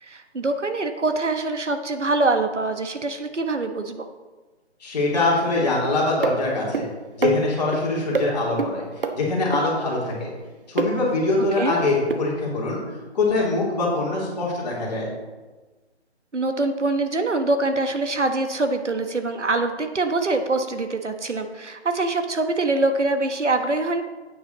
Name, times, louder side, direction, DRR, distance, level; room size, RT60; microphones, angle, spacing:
voice 1, 0.0-4.1 11.6-11.8 16.3-24.0, right 2 dB, 85° right, 7 dB, 1.3 m, -24 dB
voice 2, 4.8-6.9 7.2-8.8 9.1-10.3 10.7-12.8 13.1-15.1, left 2 dB, 35° left, -4 dB, 3.2 m, -23 dB
sound 1, 6.2-6.4 6.7-6.9 7.2-7.8 8.2-8.3 8.6-8.7 9.0-9.1 9.5-9.6 10.8-10.9 12.1-12.2, right 4 dB, 50° right, 0.9 m, -23 dB
9.9 x 8.7 x 4.0 m, 1.3 s
figure-of-eight pair, 155°, 35 cm